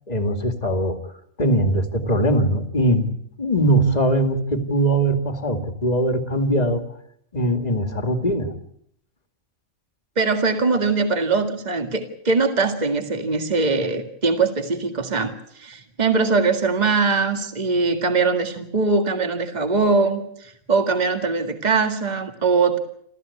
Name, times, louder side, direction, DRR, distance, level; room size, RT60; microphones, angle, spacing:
voice 1, 0.1-1.0 1.4-6.9 7.3-8.6, right 1 dB, 30° left, 7 dB, 2.3 m, -21 dB
voice 2, 10.2-22.8, right 4 dB, 35° right, 6 dB, 2.0 m, -21 dB
29.0 x 14.0 x 8.5 m, 0.70 s
omnidirectional pair, 1.4 m